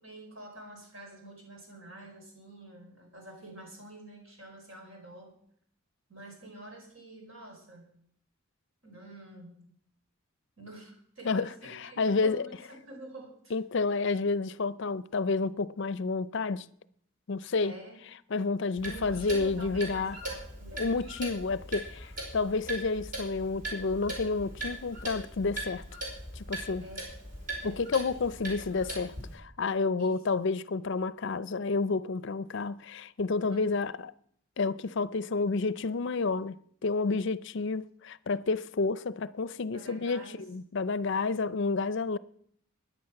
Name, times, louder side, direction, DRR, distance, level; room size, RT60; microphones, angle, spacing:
voice 1, 0.0-5.3 6.1-7.9 8.8-9.7 10.6-13.5 17.6-18.0 18.8-21.0 26.8-27.2 27.6-27.9 30.0-30.2 33.5-33.7 39.7-40.4, right 1 dB, 65° right, 4.5 m, -48 dB
voice 2, 11.3-12.5 13.5-16.7 17.3-17.7 18.3-20.2 20.8-25.8 26.3-26.8 27.6-34.1 34.6-36.6 36.8-42.2, left 4 dB, 55° left, 0.5 m, -30 dB
Clock, 18.8-29.3, right 1 dB, 40° right, 4.9 m, -40 dB
14.0 x 10.0 x 5.9 m
head